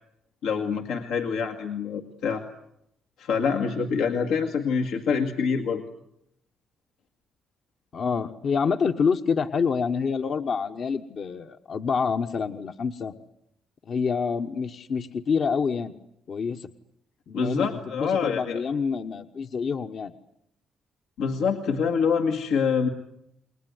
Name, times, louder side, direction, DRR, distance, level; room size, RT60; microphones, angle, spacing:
voice 1, 0.4-2.4 3.2-5.8 17.3-18.6 21.2-22.9, left 6 dB, 90° left, 3 dB, 1.9 m, -26 dB
voice 2, 7.9-13.1 13.8-15.9 16.3-16.7 17.3-20.1, left 5 dB, 55° left, 6 dB, 1.2 m, -27 dB
29.0 x 21.0 x 9.6 m, 0.78 s
cardioid pair, 90°, 0 cm